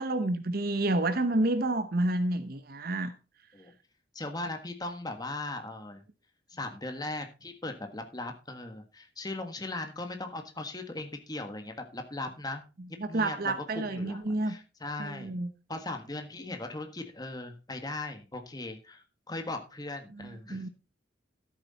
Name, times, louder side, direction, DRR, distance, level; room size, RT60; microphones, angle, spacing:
voice 1, 0.0-3.1 13.0-14.5 15.0-15.5 20.2-20.7, right 2 dB, 55° right, 11 dB, 0.9 m, -29 dB
voice 2, 4.1-6.0 6.5-12.6 13.1-15.4 15.7-20.7, left 2 dB, 20° left, 5 dB, 1.5 m, -38 dB
13.0 x 7.6 x 4.1 m, 0.32 s
head